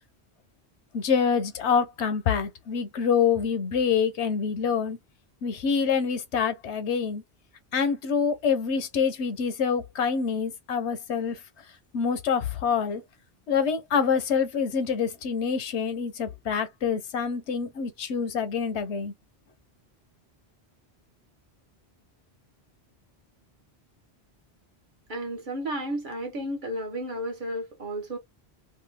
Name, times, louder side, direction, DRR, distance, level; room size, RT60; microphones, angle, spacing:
voice 1, 0.9-5.0 5.4-7.2 7.7-11.4 11.9-13.0 13.5-19.1, left 6 dB, 90° left, 1.1 m, -26 dB
voice 2, 25.1-28.2, right 1 dB, 50° right, 1.1 m, -32 dB
2.7 x 2.2 x 3.4 m
omnidirectional pair, 1.1 m